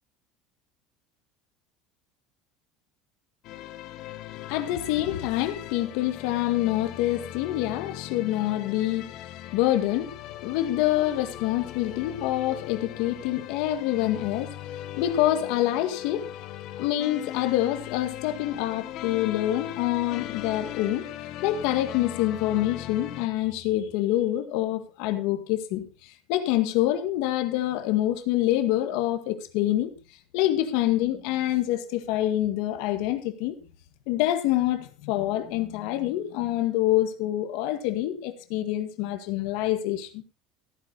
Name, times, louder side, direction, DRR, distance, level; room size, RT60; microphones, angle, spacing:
sound 1, 3.4-23.3, left 13 dB, 40° left, 1.1 m, -39 dB
voice 1, 4.5-9.2 9.5-14.6 15.0-16.3 16.8-21.1 21.4-29.9 30.3-33.6 34.1-40.2, left 14 dB, 60° left, 1.8 m, -26 dB
15.0 x 9.4 x 4.0 m
cardioid pair, 180°, 0 cm